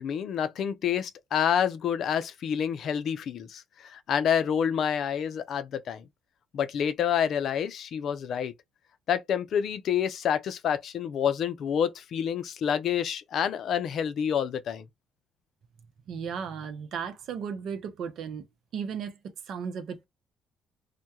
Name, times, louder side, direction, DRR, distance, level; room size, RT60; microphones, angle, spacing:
voice 1, 0.0-6.1 6.5-8.5 9.1-14.8, left 8 dB, 65° left, 0.4 m, -28 dB
voice 2, 16.1-18.4 18.7-19.2 19.5-20.1, right 6 dB, 70° right, 0.6 m, -35 dB
2.2 x 2.1 x 2.8 m
supercardioid pair, 75°, 0 cm